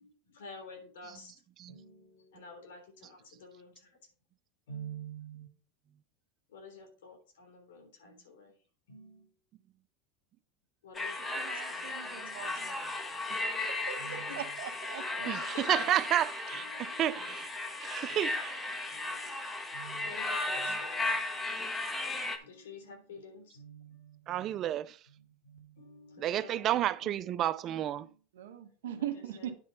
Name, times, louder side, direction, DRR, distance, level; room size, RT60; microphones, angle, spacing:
voice 1, 0.0-1.3 1.7-3.7 4.7-5.5 6.5-8.5 8.9-9.3 10.8-12.7 14.0-14.5 15.2-15.9 16.5-17.3 18.1-18.2 18.9-19.4 19.7-21.0 21.3-21.6 22.1-24.5 25.1-27.2 27.9-28.2 28.8-29.1 29.4-29.5, right 1 dB, 90° left, 3.3 m, -50 dB
sound 1, 10.9-22.4, left 2 dB, 15° left, 1.3 m, -36 dB
voice 2, 11.3-13.0 13.3-13.4 13.9-14.0 14.3-15.5 28.3-29.5, right 11 dB, 90° right, 1.4 m, -41 dB
voice 3, 15.2-17.5 17.8-18.7 24.3-25.0 26.2-28.1, right 12 dB, 40° right, 0.4 m, -31 dB
9.7 x 4.2 x 5.6 m
supercardioid pair, 130°, 0 cm